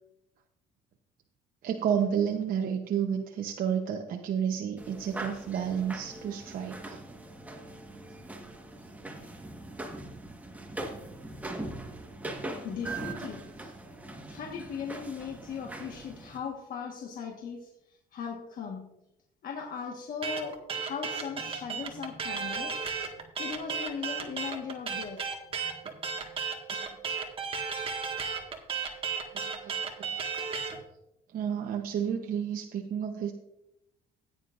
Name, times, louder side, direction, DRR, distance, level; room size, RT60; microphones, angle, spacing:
voice 1, 1.6-7.0 29.6-30.1 31.3-33.3, right 8 dB, 55° right, 3 dB, 0.9 m, -31 dB
sound 1, 4.8-16.4, right 2 dB, 10° right, 1.4 m, -41 dB
voice 2, 12.6-13.7 14.1-18.9 19.4-22.8 23.4-25.2 25.5-25.7, left 6 dB, 55° left, 1 dB, 1.5 m, -38 dB
sound 2, 20.2-30.8, right 5 dB, 35° right, 1.7 m, -34 dB
15.5 x 9.6 x 2.6 m, 0.85 s
cardioid pair, 110°, 17 cm